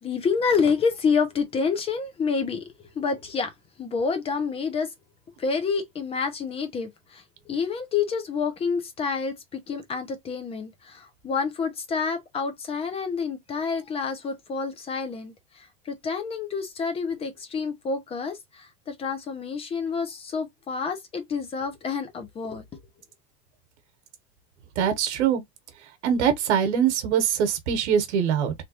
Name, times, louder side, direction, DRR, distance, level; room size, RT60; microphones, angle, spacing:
voice 1, 0.0-4.9 5.4-22.6, left 5 dB, 15° left, 0.7 m, -28 dB
voice 2, 24.8-25.4 26.0-28.5, right 8 dB, 90° right, 1.0 m, -23 dB
3.4 x 2.6 x 2.7 m
supercardioid pair, 150°, 33 cm